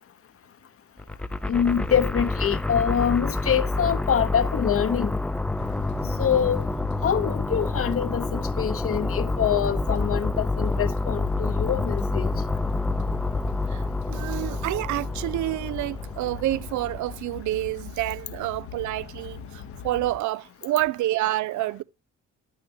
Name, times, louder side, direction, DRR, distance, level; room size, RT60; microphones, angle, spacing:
sound 1, 1.0-17.2, left 2 dB, 5° left, 0.4 m, -28 dB
voice 1, 1.5-5.1 6.2-6.7 7.0-12.3, left 8 dB, 50° left, 0.8 m, -25 dB
sound 2, 5.6-20.2, left 7 dB, 75° left, 1.0 m, -40 dB
voice 2, 13.7-21.8, right 15 dB, 75° right, 0.5 m, -28 dB
10.5 x 9.4 x 2.8 m
cardioid pair, 90°, 30 cm